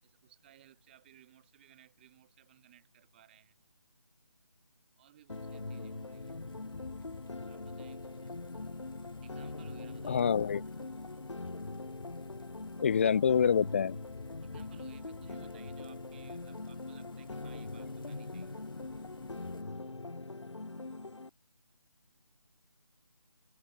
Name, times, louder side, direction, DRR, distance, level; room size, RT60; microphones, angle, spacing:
voice 1, 0.0-3.6 5.0-6.4 7.5-8.5 9.2-10.3 14.4-18.6, right 12 dB, 20° right, 7.3 m, -61 dB
sound 1, 5.3-21.3, left 2 dB, 75° left, 4.7 m, -42 dB
sound 2, 5.3-19.6, left 5 dB, 45° left, 3.0 m, -52 dB
voice 2, 10.1-10.6 12.8-14.0, left 7 dB, 25° left, 0.9 m, -26 dB
figure-of-eight pair, 165°, 15 cm